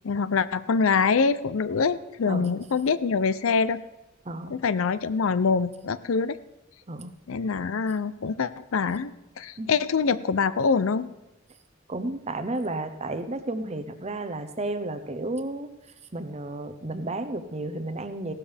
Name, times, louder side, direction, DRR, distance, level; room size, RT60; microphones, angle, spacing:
voice 1, 0.0-3.8 4.5-6.4 7.3-11.1, left 5 dB, 80° left, 16 dB, 0.5 m, -25 dB
voice 2, 4.2-4.6 6.9-7.1 9.6-9.8 11.9-15.7 16.1-18.3, right 2 dB, 30° right, 9 dB, 0.8 m, -32 dB
16.0 x 12.5 x 3.4 m, 0.94 s
head